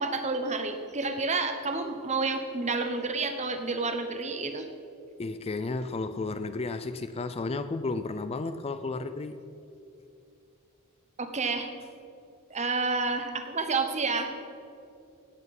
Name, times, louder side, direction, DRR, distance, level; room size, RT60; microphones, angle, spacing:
voice 1, 0.0-4.7 11.2-11.7 12.5-14.3, right 3 dB, 35° right, 7 dB, 1.1 m, -29 dB
voice 2, 5.2-9.5, left 3 dB, 30° left, 11 dB, 0.4 m, -33 dB
17.5 x 8.2 x 5.4 m, 2.6 s
head